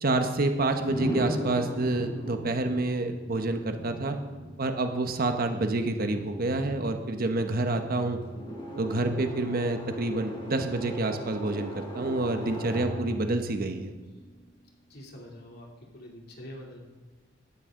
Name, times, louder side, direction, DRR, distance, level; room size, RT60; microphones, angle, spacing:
voice 1, 0.0-4.2 4.6-8.2 8.8-13.9, right 2 dB, 50° right, 6 dB, 1.1 m, -28 dB
sound 1, 0.8-14.7, equal, 25° left, 4.0 m, -38 dB
voice 2, 14.9-15.7 15.9-16.8, equal, 55° left, 0 dB, 2.9 m, -45 dB
17.0 x 12.5 x 3.8 m, 1.3 s
head